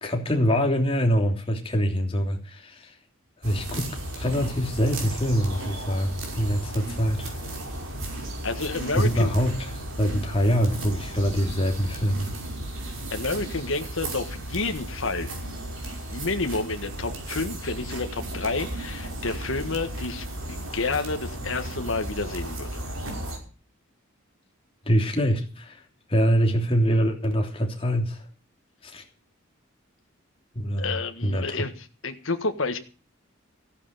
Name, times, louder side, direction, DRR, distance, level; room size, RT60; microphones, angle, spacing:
voice 1, 0.0-2.9 3.4-7.4 8.9-9.7 10.0-12.3 24.9-25.8 26.1-28.2 28.8-29.0 30.5-31.0 31.2-31.6, equal, 25° left, 3.2 m, -24 dB
sound 1, 3.4-23.4, right 1 dB, 70° right, 5.5 m, -35 dB
voice 2, 8.4-9.3 13.1-15.3 16.1-22.8 30.8-31.7 32.0-32.8, left 3 dB, 70° left, 1.6 m, -29 dB
15.5 x 9.8 x 6.8 m
head